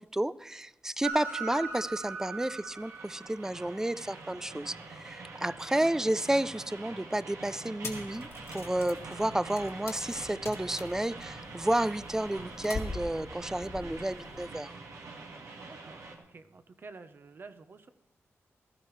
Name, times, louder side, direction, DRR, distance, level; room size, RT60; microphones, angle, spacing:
voice 1, 0.0-14.7, right 1 dB, 10° right, 0.3 m, -31 dB
Train, 1.0-16.2, right 3 dB, 85° right, 1.8 m, -43 dB
sound 1, 7.8-14.5, left 3 dB, 65° left, 1.9 m, -44 dB
voice 2, 15.6-16.0 16.3-17.9, right 4 dB, 45° right, 0.8 m, -50 dB
16.0 x 14.0 x 3.2 m
wide cardioid pair, 100°, 5 cm